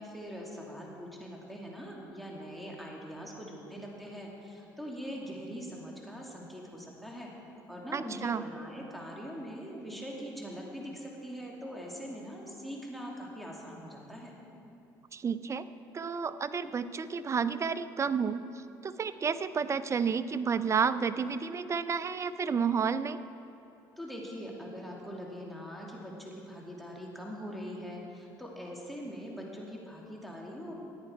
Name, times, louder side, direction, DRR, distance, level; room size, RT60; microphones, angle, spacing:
voice 1, 0.0-7.3 7.7-14.4 24.0-30.7, equal, ahead, -3 dB, 2.7 m, -42 dB
voice 2, 7.9-8.4 15.1-15.7 15.9-23.2, right 6 dB, 30° right, 14 dB, 0.5 m, -31 dB
14.5 x 9.6 x 4.6 m, 2.8 s
supercardioid pair, 70°, 9 cm